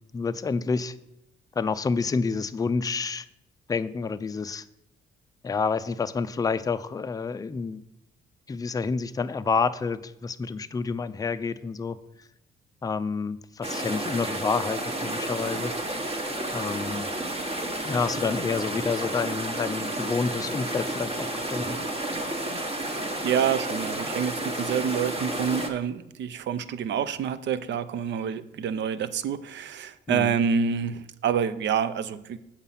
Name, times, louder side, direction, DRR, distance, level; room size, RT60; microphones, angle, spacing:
voice 1, 0.1-0.9 1.6-3.3 3.7-4.6 5.4-7.8 8.5-12.0 12.8-15.7 16.5-17.1 17.8-21.8 30.1-30.4, left 5 dB, 20° left, 11 dB, 0.4 m, -28 dB
sound 1, 13.6-25.7, right 1 dB, 30° right, 1.2 m, -31 dB
voice 2, 23.2-32.4, right 7 dB, 65° right, 14 dB, 0.6 m, -27 dB
7.2 x 5.4 x 5.6 m, 0.84 s
cardioid pair, 90°, 20 cm